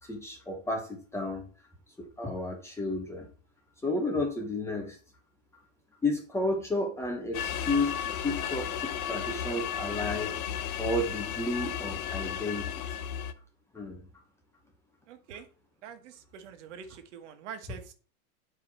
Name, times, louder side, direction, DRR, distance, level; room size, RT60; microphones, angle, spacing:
voice 1, 0.0-1.5 2.0-3.3 3.8-5.0 6.0-10.3 10.8-12.7 13.7-14.0, left 2 dB, 5° left, 2 dB, 0.9 m, -32 dB
sound 1, 7.3-13.3, left 9 dB, 80° left, 1.1 m, -34 dB
voice 2, 15.1-15.5 15.8-17.9, right 7 dB, 55° right, 7 dB, 1.4 m, -45 dB
9.0 x 4.8 x 4.1 m, 0.39 s
supercardioid pair, 160°, 43 cm